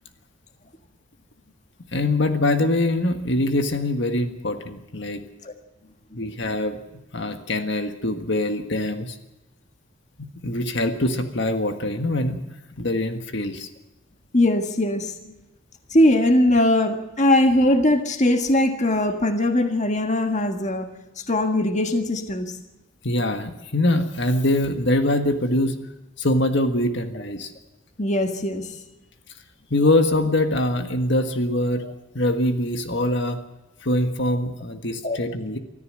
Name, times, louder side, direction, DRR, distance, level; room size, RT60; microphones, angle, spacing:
voice 1, 1.9-5.2 6.1-6.8 7.1-9.2 10.2-12.4 12.8-13.7 23.0-25.9 26.2-27.5 29.7-31.8 32.1-33.4 33.8-35.6, left 1 dB, 55° left, 7 dB, 1.6 m, -23 dB
voice 2, 14.3-15.3 15.9-20.9 21.2-22.6 28.0-28.7 35.0-35.2, left 1 dB, 35° left, 6 dB, 1.6 m, -20 dB
24.5 x 14.0 x 7.6 m, 1.0 s
head